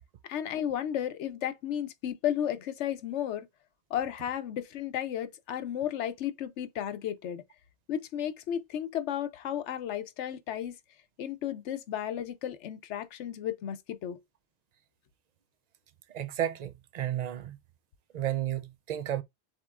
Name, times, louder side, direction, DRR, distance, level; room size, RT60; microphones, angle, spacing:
voice 1, 0.3-3.5 3.9-7.4 7.9-10.7 11.2-14.2, left 10 dB, 80° left, 0.9 m, -33 dB
voice 2, 16.1-17.6 18.1-19.2, right 12 dB, 55° right, 0.5 m, -32 dB
7.3 x 2.9 x 2.4 m
omnidirectional pair, 1.2 m